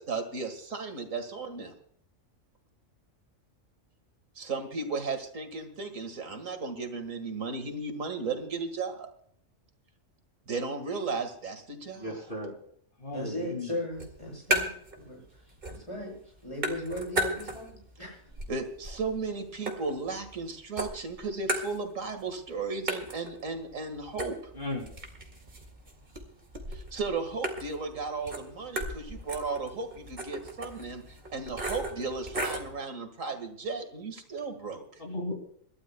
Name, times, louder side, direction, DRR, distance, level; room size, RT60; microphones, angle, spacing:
voice 1, 0.0-1.7 4.4-9.1 10.5-12.2 18.5-24.4 26.7-34.9, right 4 dB, 85° right, 6 dB, 2.2 m, -35 dB
voice 2, 11.9-12.5 13.0-13.8 24.5-24.9 35.0-35.3, left 1 dB, 40° left, 1 dB, 3.1 m, -35 dB
voice 3, 13.1-14.7 15.1-15.2 15.7-16.2 16.4-18.2, left 1 dB, 25° left, -2 dB, 7.5 m, -37 dB
sound 1, 13.9-15.0 15.3-16.0 16.2-17.8 18.2-20.4 20.8-22.2 22.5-22.6 22.9-32.7, right 1 dB, 45° right, 2.4 m, -35 dB
26.5 x 12.5 x 2.3 m, 0.64 s
omnidirectional pair, 1.3 m